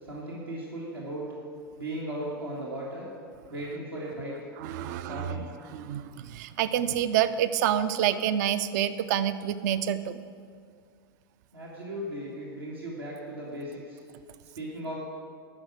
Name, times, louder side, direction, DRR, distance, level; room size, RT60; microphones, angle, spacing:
voice 1, 0.0-1.3 1.8-3.1 3.5-4.4 4.8-5.5 11.5-14.0 14.6-15.0, right 1 dB, 85° right, -6 dB, 1.8 m, -37 dB
voice 2, 4.6-5.4 5.7-10.2, right 10 dB, 50° right, 13 dB, 0.5 m, -28 dB
10.5 x 4.9 x 7.4 m, 2.2 s
figure-of-eight pair, 95°, 12 cm